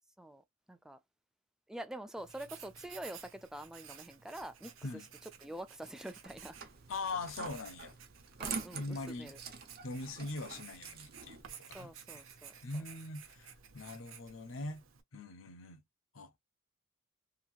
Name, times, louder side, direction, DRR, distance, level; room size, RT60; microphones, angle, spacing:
voice 1, 0.7-1.0 1.7-4.7 5.4-6.6 8.4-9.4 11.7-12.5, right 1 dB, 5° right, 0.3 m, -46 dB
Writing, 2.2-15.0, right 7 dB, 90° right, 0.8 m, -53 dB
sound 1, 6.2-11.4, right 5 dB, 50° right, 0.8 m, -46 dB
voice 2, 6.9-7.9 8.7-9.3 9.8-11.4 11.7-11.9 12.6-14.8 15.1-15.8 16.1-16.3, left 3 dB, 75° left, 0.7 m, -41 dB
2.8 x 2.7 x 2.4 m
head